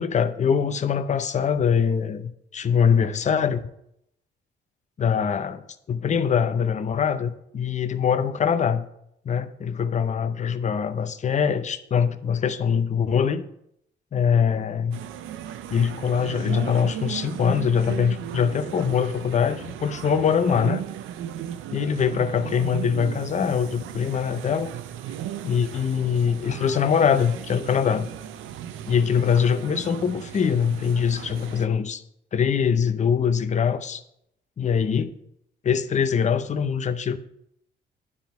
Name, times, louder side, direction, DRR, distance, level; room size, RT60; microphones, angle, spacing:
voice 1, 0.0-3.7 5.0-8.9 9.2-13.4 14.1-15.0 15.7-20.8 21.7-24.7 25.4-28.1 28.9-32.0 32.3-34.0 34.6-35.1 35.6-37.2, left 7 dB, 35° left, 11 dB, 0.6 m, -23 dB
sound 1, 14.9-31.6, right 11 dB, 85° right, 0.5 m, -36 dB
9.7 x 3.6 x 5.8 m, 0.76 s
cardioid pair, 90°, 20 cm